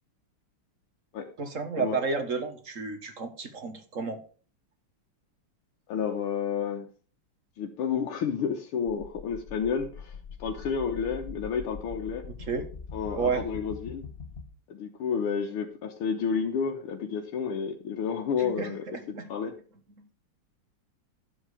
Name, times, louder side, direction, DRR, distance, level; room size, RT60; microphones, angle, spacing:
voice 1, 1.4-4.2 12.4-12.7 13.1-13.4 18.4-19.3 20.0-20.1, right 5 dB, 40° right, 7 dB, 1.7 m, -31 dB
voice 2, 5.9-6.9 7.6-12.2 12.9-14.1 14.7-19.6, left 6 dB, 80° left, 1 dB, 2.0 m, -31 dB
sound 1, 8.9-14.4, left 5 dB, 30° left, 1.4 m, -42 dB
12.0 x 7.5 x 4.9 m, 0.40 s
omnidirectional pair, 2.4 m